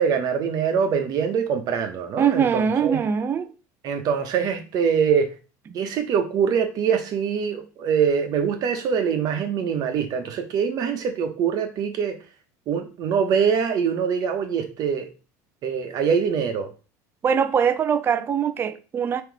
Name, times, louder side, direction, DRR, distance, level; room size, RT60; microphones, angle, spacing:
voice 1, 0.0-3.0 3.8-5.3 5.7-12.2 12.7-15.1 15.6-16.7, right 7 dB, 50° right, 0.9 m, -23 dB
voice 2, 2.2-3.5 17.2-19.2, right 7 dB, 25° right, 0.4 m, -22 dB
3.8 x 3.0 x 4.6 m
supercardioid pair, 120°, 8 cm